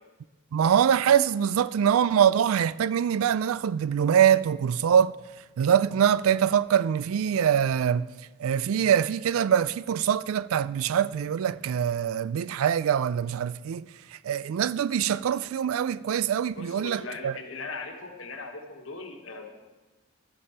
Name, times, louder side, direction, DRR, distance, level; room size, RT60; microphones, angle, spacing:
voice 1, 0.5-5.1 5.6-8.1 8.4-17.3, right 8 dB, 85° right, 0.3 m, -24 dB
voice 2, 16.5-19.5, left 3 dB, 75° left, 1.3 m, -39 dB
12.0 x 8.6 x 4.3 m
head